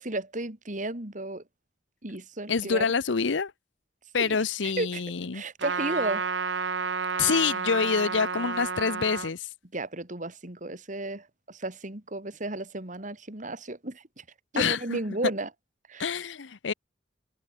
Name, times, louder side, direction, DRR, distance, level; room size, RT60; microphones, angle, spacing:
voice 1, 0.0-1.4 2.0-2.9 4.2-4.4 4.6-5.0 5.3-6.3 9.7-14.2 14.5-15.5 15.9-16.1, right 2 dB, 45° right, 3.2 m, -33 dB
voice 2, 2.5-3.5 4.1-5.4 7.2-9.5 14.6-15.0 16.0-16.7, left 5 dB, 90° left, 0.8 m, -26 dB
Trumpet, 5.6-9.3, right 5 dB, 90° right, 1.6 m, -30 dB
head